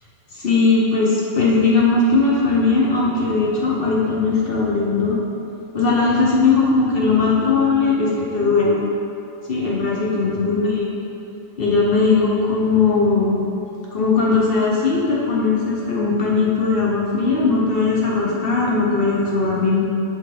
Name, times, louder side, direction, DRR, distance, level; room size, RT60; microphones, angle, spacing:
voice 1, 0.3-5.2 5.7-8.8 9.5-10.9 11.6-13.4 13.9-19.8, left 4 dB, 50° left, -4 dB, 0.7 m, -18 dB
11.5 x 4.1 x 3.3 m, 2.7 s
omnidirectional pair, 2.1 m